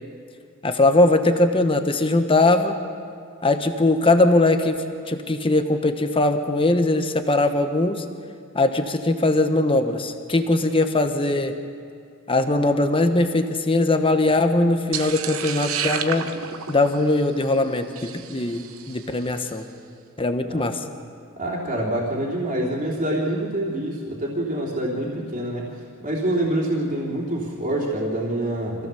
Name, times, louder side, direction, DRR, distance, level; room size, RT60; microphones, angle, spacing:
voice 1, 0.6-2.8 3.4-8.0 8.5-11.6 12.3-16.3 16.7-19.6 20.2-20.8, left 2 dB, 25° left, 7 dB, 1.1 m, -20 dB
sound 1, 14.9-19.2, right 7 dB, 65° right, 1.0 m, -31 dB
voice 2, 21.4-25.7 26.0-28.9, right 1 dB, 35° right, -4 dB, 3.4 m, -26 dB
25.5 x 16.0 x 7.0 m, 2.3 s
head